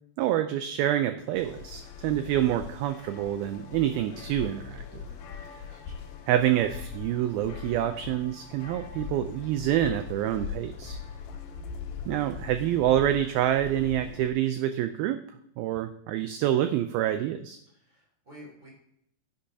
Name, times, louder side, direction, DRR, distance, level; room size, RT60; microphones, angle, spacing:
voice 1, 0.2-5.1 6.3-11.0 12.1-15.2 15.6-17.6, right 12 dB, 85° right, 9 dB, 2.2 m, -27 dB
sound 1, 1.4-14.3, left 7 dB, 75° left, 2.5 m, -41 dB
voice 2, 5.0-6.0 17.7-18.7, equal, 30° right, -4 dB, 3.5 m, -52 dB
10.5 x 10.0 x 2.8 m, 0.73 s
omnidirectional pair, 4.8 m